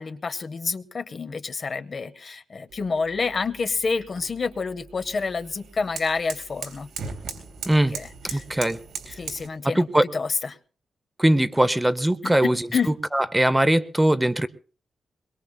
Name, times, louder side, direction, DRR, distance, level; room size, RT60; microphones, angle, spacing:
voice 1, 0.0-6.9 7.3-7.4 7.9-8.4 9.2-9.9 10.1-10.6 12.2-12.9, left 4 dB, 45° left, 11 dB, 0.8 m, -28 dB
sound 1, 2.7-9.5, right 5 dB, 85° right, 3.6 m, -39 dB
voice 2, 8.3-8.8 9.1-9.2 9.6-10.0 11.2-12.7 13.1-14.5, right 1 dB, 10° right, 12 dB, 0.6 m, -21 dB
22.5 x 21.5 x 2.2 m, 0.38 s
wide cardioid pair, 115°, 0 cm